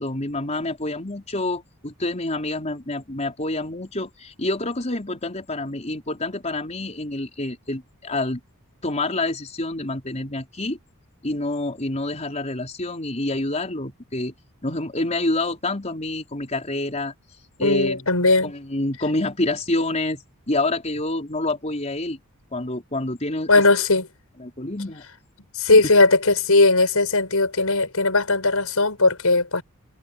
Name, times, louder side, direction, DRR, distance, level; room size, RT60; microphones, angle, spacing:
voice 1, 0.0-8.4 8.8-10.8 11.2-14.3 14.6-17.1 17.6-18.1 18.4-22.2 22.5-23.5 24.4-25.0 25.7-25.8, left 2 dB, 30° left, 4.7 m, -27 dB
voice 2, 17.6-18.5 23.5-24.1 25.5-29.6, left 3 dB, 75° left, 6.4 m, -18 dB
head